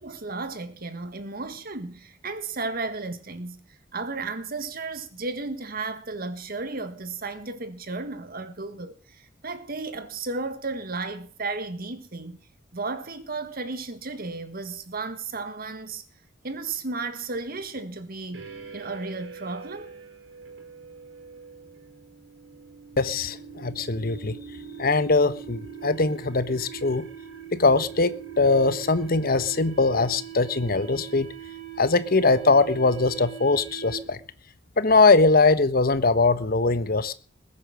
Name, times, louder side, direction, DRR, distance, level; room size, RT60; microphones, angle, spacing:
voice 1, 0.0-12.4 12.7-16.0 16.4-19.9, right 3 dB, 50° right, 1.9 m, -34 dB
sound 1, 18.3-34.3, right 8 dB, 65° right, 4.5 m, -42 dB
voice 2, 23.0-24.4 24.8-27.1 27.5-31.3 31.8-34.2 34.8-37.1, left 3 dB, 50° left, 1.1 m, -21 dB
21.0 x 8.6 x 6.3 m
head